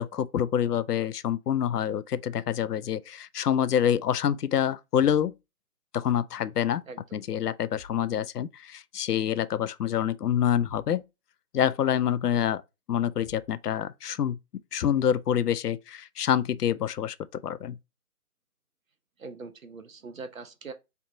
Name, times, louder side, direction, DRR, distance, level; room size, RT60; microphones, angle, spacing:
voice 1, 0.0-5.3 5.9-6.8 7.1-11.0 11.5-12.6 12.9-14.4 14.7-17.8, left 9 dB, 90° left, 0.6 m, -26 dB
sound 1, 7.7-8.1 10.6-11.0 13.2-13.6, left 3 dB, 10° left, 1.3 m, -51 dB
voice 2, 19.2-20.7, right 4 dB, 60° right, 0.8 m, -41 dB
4.1 x 3.3 x 2.5 m
hypercardioid pair, 175°, 46 cm